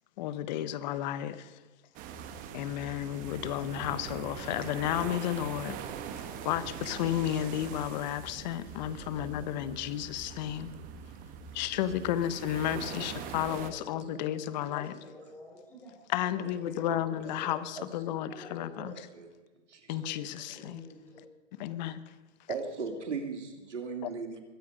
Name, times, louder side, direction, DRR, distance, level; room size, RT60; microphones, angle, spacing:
voice 1, 0.2-1.6 2.5-5.8 6.1-10.7 11.5-15.1 16.1-19.1 19.9-20.8 21.5-22.0 24.0-24.1, left 11 dB, 40° left, 1.0 m, -33 dB
sound 1, 1.9-13.7, right 7 dB, 25° right, 1.0 m, -42 dB
voice 2, 9.0-9.5 12.0-12.2 13.7-14.2 14.7-14.8 15.0-15.1 16.9-17.0 17.2-17.9 18.3-18.4 18.8-19.4 19.7-20.2 22.5-24.4, right 5 dB, 90° right, 2.7 m, -40 dB
voice 3, 14.7-16.0 16.4-16.9 17.4-17.6 18.3-18.7 20.0-21.3, left 2 dB, 5° left, 6.0 m, -50 dB
22.0 x 9.3 x 5.1 m
hypercardioid pair, 140°, 35 cm